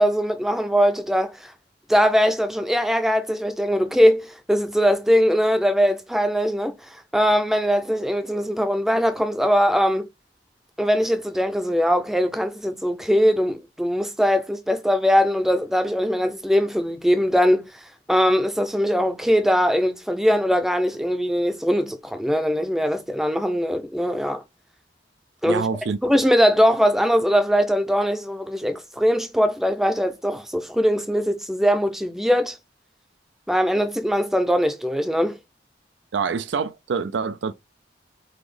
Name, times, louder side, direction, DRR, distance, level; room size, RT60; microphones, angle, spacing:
voice 1, 0.0-1.5 1.9-6.8 7.1-10.1 10.8-17.7 18.1-24.4 25.4-25.7 26.0-32.6 33.5-35.4, equal, ahead, 0.5 m, -21 dB
voice 2, 25.5-26.0 36.1-37.5, right 5 dB, 65° right, 0.4 m, -26 dB
4.0 x 3.0 x 3.2 m
head